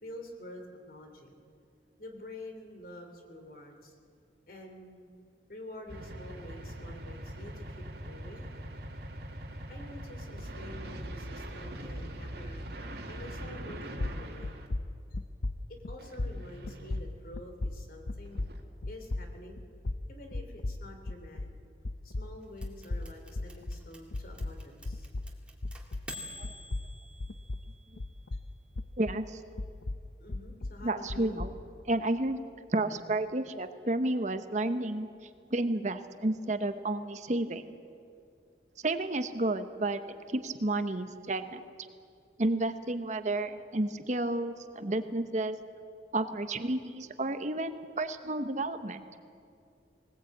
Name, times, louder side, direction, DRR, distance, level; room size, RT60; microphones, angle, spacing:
voice 1, 0.0-1.4 2.0-3.9 4.5-5.1 5.5-8.5 9.7-12.6 13.1-14.7 15.9-18.4 18.9-19.6 20.1-21.5 22.0-25.1 30.2-31.4, left 1 dB, 55° left, 4 dB, 3.1 m, -48 dB
sound 1, 5.9-14.7 16.0-17.0 18.2-18.6, right 1 dB, 65° right, 2.3 m, -42 dB
sound 2, 13.4-13.7 14.0-21.6 21.9-26.2 26.4-29.3 29.6-31.6, left 2 dB, 85° left, 0.8 m, -37 dB
sound 3, 22.6-27.9, equal, 5° right, 2.1 m, -47 dB
voice 2, 29.0-29.4 30.8-31.5 31.9-32.4 32.7-35.1 35.5-37.6 38.8-40.0 40.3-41.6 42.4-45.6 46.1-49.0, right 2 dB, 40° right, 9 dB, 1.0 m, -31 dB
20.0 x 19.5 x 8.6 m, 2.4 s
head